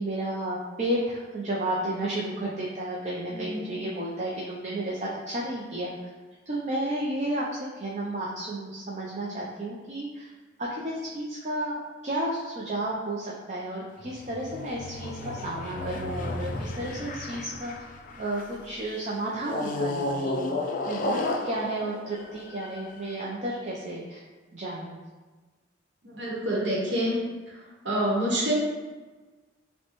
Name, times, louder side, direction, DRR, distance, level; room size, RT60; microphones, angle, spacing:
voice 1, 0.0-5.9 6.5-7.5 7.7-10.3 10.6-17.7 18.2-20.5 20.9-24.2 24.5-25.0, right 1 dB, 40° right, -5 dB, 0.5 m, -32 dB
voice 2, 3.3-3.8 26.1-27.2 27.8-28.5, right 1 dB, 85° right, -4 dB, 1.0 m, -27 dB
sound 1, 14.0-18.6 19.4-23.0, left 2 dB, 45° left, 0.3 m, -33 dB
5.5 x 2.2 x 3.0 m, 1.3 s
head